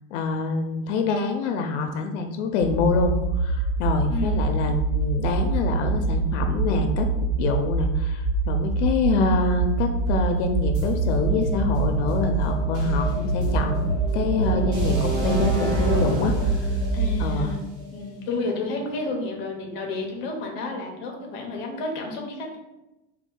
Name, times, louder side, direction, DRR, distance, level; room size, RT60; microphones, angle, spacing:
voice 1, 0.1-7.1 7.4-13.9 14.1-16.8 17.2-17.5, left 4 dB, 75° left, 5 dB, 0.5 m, -26 dB
sound 1, 2.6-17.4, right 3 dB, 65° right, 1.2 m, -25 dB
voice 2, 4.1-4.4 16.9-17.6 17.9-22.6, left 3 dB, 30° left, 1 dB, 0.6 m, -31 dB
sound 2, 10.7-18.6, equal, 30° right, 1.0 m, -31 dB
4.2 x 2.3 x 3.7 m, 0.98 s
supercardioid pair, 175°, 36 cm